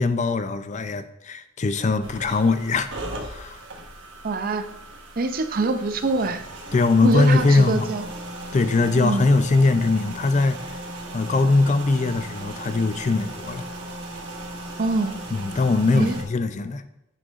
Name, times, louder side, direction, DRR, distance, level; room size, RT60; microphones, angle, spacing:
voice 1, 0.0-2.9 3.3-3.6 6.7-7.9 8.5-10.7 11.1-13.7 15.3-16.8, left 3 dB, 40° left, 11 dB, 0.5 m, -21 dB
sound 1, 2.0-16.2, right 1 dB, 75° right, 1.2 m, -37 dB
voice 2, 4.2-4.7 5.2-6.5 7.0-8.0 9.0-9.3 14.8-15.2 15.9-16.2, right 3 dB, 50° right, 9 dB, 0.6 m, -24 dB
10.0 x 7.6 x 2.5 m, 0.85 s
head